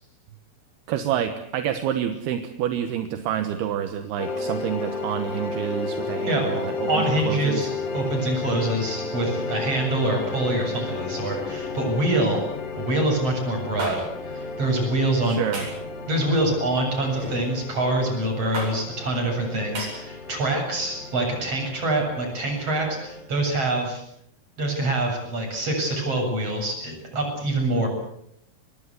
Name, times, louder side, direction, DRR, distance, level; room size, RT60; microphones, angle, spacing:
voice 1, 0.9-7.7 15.3-15.7, right 10 dB, 75° right, 9 dB, 3.1 m, -28 dB
sound 1, 4.2-23.2, left 3 dB, 50° left, 4.2 m, -33 dB
voice 2, 6.9-12.4 12.8-15.4 16.1-24.0 24.6-27.9, right 2 dB, 35° right, 2 dB, 8.6 m, -25 dB
sound 2, 13.8-13.9 15.5-15.8 17.1-17.4 18.5-18.7 19.7-19.9, right 1 dB, 55° right, 9.5 m, -31 dB
24.5 x 21.0 x 8.2 m, 0.74 s
omnidirectional pair, 4.9 m